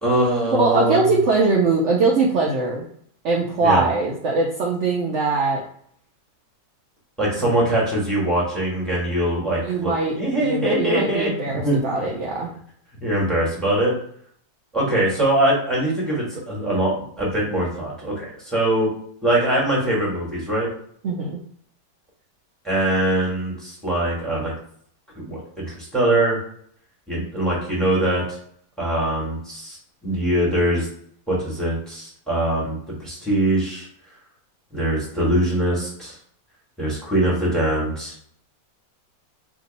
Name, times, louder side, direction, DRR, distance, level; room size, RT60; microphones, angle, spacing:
voice 1, 0.0-1.1 3.6-3.8 7.2-11.8 13.0-13.9 14.7-18.9 19.2-20.7 22.6-24.5 25.2-26.4 27.1-28.4 28.8-29.8 30.0-30.9 31.3-33.9 34.7-36.1 36.8-38.1, right 1 dB, ahead, -5 dB, 1.3 m, -22 dB
voice 2, 0.6-2.8 3.2-5.6 7.4-7.5 9.6-12.5 21.0-21.4, right 3 dB, 70° right, -2 dB, 0.7 m, -21 dB
3.0 x 2.7 x 4.0 m, 0.63 s
omnidirectional pair, 1.9 m